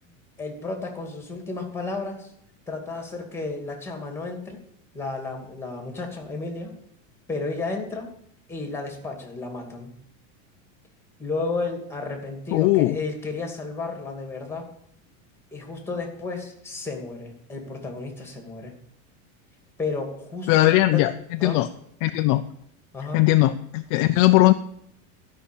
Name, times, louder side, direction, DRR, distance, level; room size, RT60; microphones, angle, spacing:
voice 1, 0.4-2.3 2.7-4.6 4.9-6.7 7.3-8.1 8.5-9.9 11.2-14.7 15.5-18.7 19.8-21.1 21.4-21.6 22.9-23.2, left 3 dB, 5° left, 3 dB, 2.3 m, -32 dB
voice 2, 12.5-13.0 20.5-21.1 21.4-21.7 22.0-22.4 23.1-24.5, left 17 dB, 45° left, 8 dB, 0.5 m, -19 dB
12.5 x 5.8 x 8.2 m, 0.72 s
supercardioid pair, 150°, 40 cm